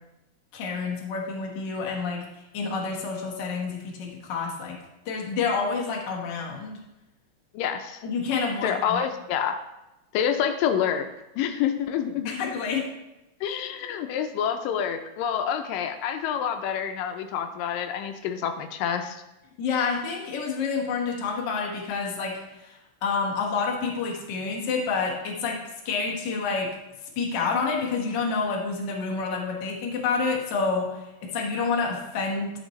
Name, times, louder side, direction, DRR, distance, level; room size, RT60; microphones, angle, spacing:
voice 1, 0.5-2.2 2.5-4.8 5.0-6.8 8.0-9.0 12.2-12.9 19.6-25.6 25.8-26.7 27.2-32.5, left 4 dB, 55° left, -2 dB, 1.2 m, -28 dB
voice 2, 7.5-8.0 8.6-9.6 10.1-11.1 11.4-12.4 13.4-19.2, left 8 dB, 80° left, 7 dB, 2.2 m, -27 dB
11.5 x 6.0 x 3.1 m, 0.95 s
omnidirectional pair, 4.0 m